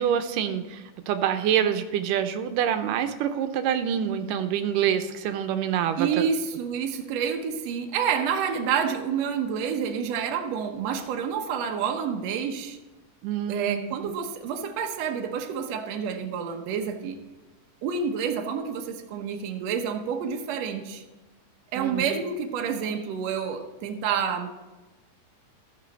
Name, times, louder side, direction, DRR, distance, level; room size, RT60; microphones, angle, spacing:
voice 1, 0.0-6.3 13.2-14.1 21.8-22.0, right 9 dB, 85° right, 9 dB, 2.3 m, -26 dB
voice 2, 6.0-12.8 13.5-17.2 17.8-21.0 21.7-24.5, right 7 dB, 65° right, 4 dB, 1.9 m, -28 dB
14.5 x 6.9 x 4.0 m, 1.1 s
omnidirectional pair, 3.7 m